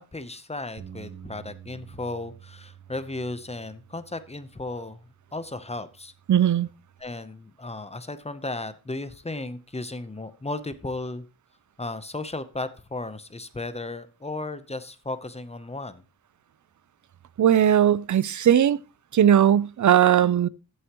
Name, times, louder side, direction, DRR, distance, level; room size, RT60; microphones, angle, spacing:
voice 1, 0.0-6.1 7.0-11.2 11.8-16.0, left 2 dB, 15° left, 0.7 m, -35 dB
Bass guitar, 0.8-7.0, right 9 dB, 65° right, 1.3 m, -49 dB
voice 2, 6.3-6.7 17.4-18.8 19.1-20.5, right 10 dB, 50° right, 0.5 m, -18 dB
14.0 x 8.0 x 3.0 m
wide cardioid pair, 160°, 39 cm